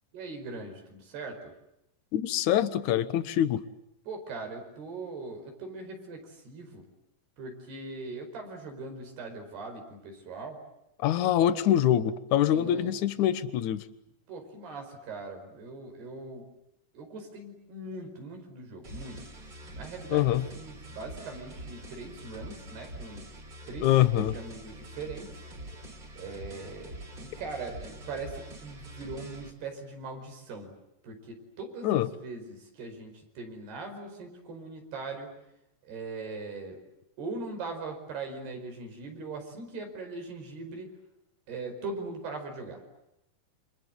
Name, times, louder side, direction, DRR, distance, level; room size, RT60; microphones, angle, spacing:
voice 1, 0.1-1.5 4.1-6.9 7.4-10.6 12.5-12.9 14.3-16.5 16.9-23.3 23.7-25.5 26.2-30.7 31.0-35.4 35.8-36.8 37.2-40.9 41.5-42.8, right 3 dB, 90° right, 4 dB, 7.0 m, -40 dB
voice 2, 2.1-3.6 11.0-13.8 20.1-20.4 23.8-24.3 31.8-32.1, left 11 dB, 65° left, 13 dB, 2.2 m, -24 dB
sound 1, 18.8-29.5, right 1 dB, 30° right, 3.7 m, -45 dB
29.0 x 26.0 x 7.8 m, 0.83 s
omnidirectional pair, 4.5 m